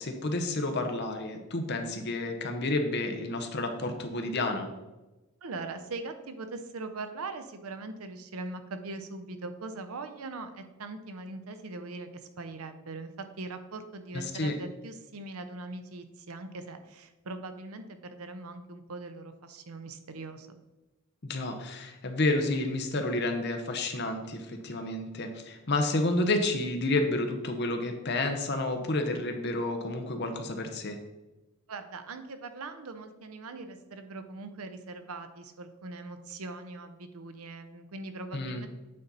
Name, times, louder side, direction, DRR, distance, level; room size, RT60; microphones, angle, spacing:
voice 1, 0.0-4.7 14.1-14.6 21.2-31.0 38.3-38.6, left 2 dB, 50° left, 5 dB, 0.8 m, -30 dB
voice 2, 5.4-12.1 12.4-20.5 31.7-38.7, right 3 dB, 90° right, 8 dB, 0.7 m, -41 dB
8.5 x 4.2 x 4.0 m, 1.1 s
head